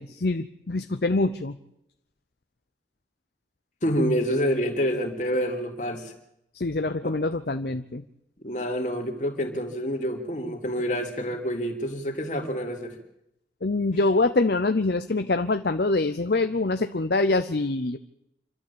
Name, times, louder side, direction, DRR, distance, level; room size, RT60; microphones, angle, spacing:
voice 1, 0.0-1.6 6.5-8.0 13.6-18.0, left 2 dB, 60° left, 9 dB, 0.7 m, -25 dB
voice 2, 3.8-6.1 7.0-7.2 8.4-12.9, equal, 45° left, 2 dB, 3.1 m, -27 dB
27.5 x 12.5 x 8.7 m, 0.81 s
head